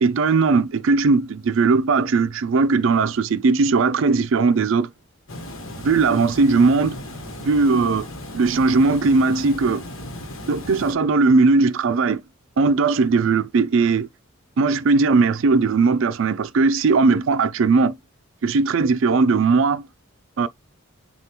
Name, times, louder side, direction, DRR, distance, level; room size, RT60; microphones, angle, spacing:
voice 1, 0.0-4.9 5.8-7.0 7.4-8.1 8.3-9.8 10.5-12.2 12.6-14.1 14.6-18.0 18.4-19.8 20.4-20.5, right 4 dB, 65° right, 0.4 m, -18 dB
Water, 5.3-10.9, left 1 dB, 70° left, 1.1 m, -36 dB
6.6 x 2.3 x 2.9 m
head